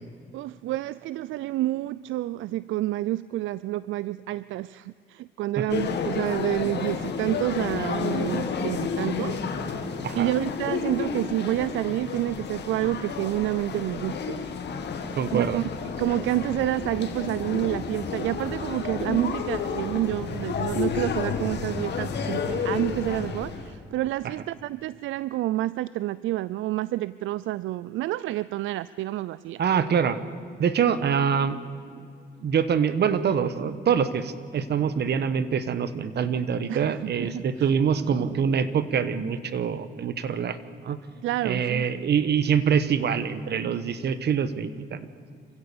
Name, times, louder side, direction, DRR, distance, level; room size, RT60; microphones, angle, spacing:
voice 1, 0.3-9.5 10.2-14.4 15.3-15.7 16.0-29.6 36.7-37.7 41.2-42.1, right 15 dB, 80° right, 18 dB, 0.4 m, -29 dB
sound 1, 5.7-23.7, left 5 dB, 60° left, 2.2 m, -31 dB
voice 2, 15.2-15.6 29.6-30.2 30.6-31.6 31.9-32.0 32.4-40.6 40.8-41.0 41.4-45.0, right 7 dB, 55° right, 13 dB, 1.3 m, -25 dB
26.0 x 16.0 x 7.0 m, 2.4 s
cardioid pair, 90°, 20 cm